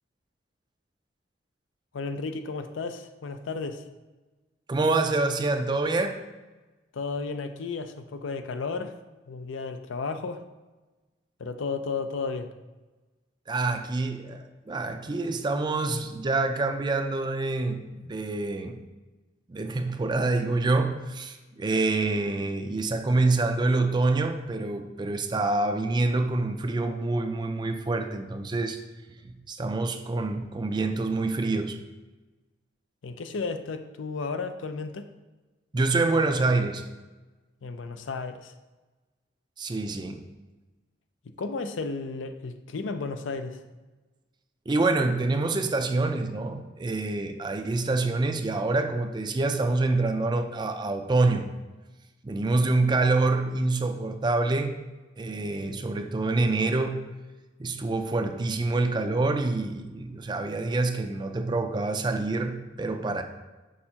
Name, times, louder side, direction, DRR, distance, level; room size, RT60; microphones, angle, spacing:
voice 1, 1.9-3.8 6.9-8.9 9.3-10.4 11.4-12.5 33.0-35.1 37.6-38.5 41.4-43.6, left 4 dB, 85° left, 8 dB, 0.5 m, -33 dB
voice 2, 4.7-6.2 13.5-18.8 19.5-28.8 29.2-31.8 35.7-36.9 39.6-40.3 44.7-51.5 52.2-54.7 55.2-57.0 57.6-63.2, right 2 dB, 25° right, 7 dB, 0.4 m, -26 dB
6.4 x 5.5 x 2.8 m, 1.2 s
head